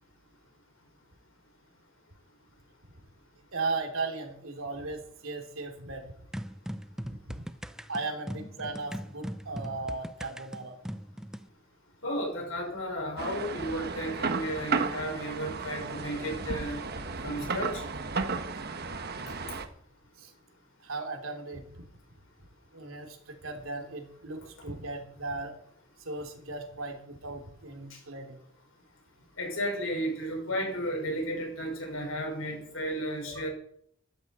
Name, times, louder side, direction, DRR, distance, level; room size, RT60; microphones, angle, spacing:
voice 1, 3.5-6.1 7.0-7.4 7.9-10.8 20.2-20.3 20.8-21.9 22.7-25.6 26.0-28.4 33.3-33.4, right 3 dB, 85° right, 4 dB, 3.0 m, -37 dB
sound 1, 6.3-11.5, equal, 5° right, 0.5 m, -40 dB
voice 2, 12.0-16.8 17.2-17.8 29.4-33.5, equal, 85° left, 1 dB, 6.0 m, -33 dB
sound 2, 13.2-19.7, right 4 dB, 50° right, 1.3 m, -34 dB
14.5 x 13.0 x 4.3 m, 0.66 s
head